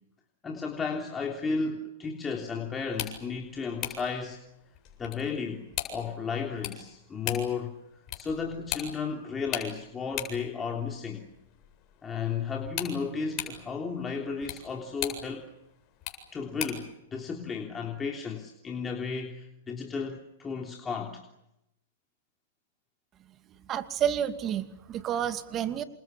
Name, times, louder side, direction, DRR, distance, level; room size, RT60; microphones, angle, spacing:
voice 1, 0.4-4.4 5.0-5.6 5.9-7.7 8.1-11.2 12.0-15.5 16.3-21.2, left 5 dB, 15° left, 1 dB, 3.3 m, -33 dB
sound 1, 2.8-16.9, left 11 dB, 35° left, 7.9 m, -41 dB
voice 2, 23.7-25.8, right 9 dB, 30° right, 9 dB, 2.5 m, -30 dB
28.5 x 27.5 x 7.3 m, 0.86 s
hypercardioid pair, 120°, 0 cm